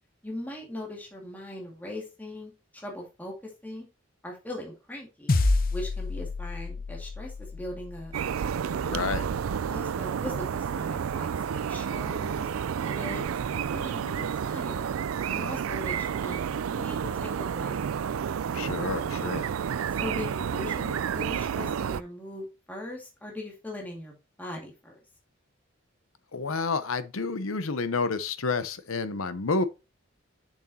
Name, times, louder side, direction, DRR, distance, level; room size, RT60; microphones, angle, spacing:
voice 1, 0.2-3.9 4.2-5.3 5.7-8.1 9.7-12.5 12.8-14.9 15.3-16.4 16.7-17.8 20.0-24.9, left 1 dB, 10° left, 2.2 m, -40 dB
sound 1, 5.3-9.9, left 2 dB, 45° left, 0.7 m, -30 dB
sound 2, 8.1-22.0, right 7 dB, 90° right, 0.4 m, -30 dB
voice 2, 8.9-9.3 18.5-19.5 26.3-29.6, left 4 dB, 90° left, 0.8 m, -29 dB
7.0 x 6.4 x 2.8 m
head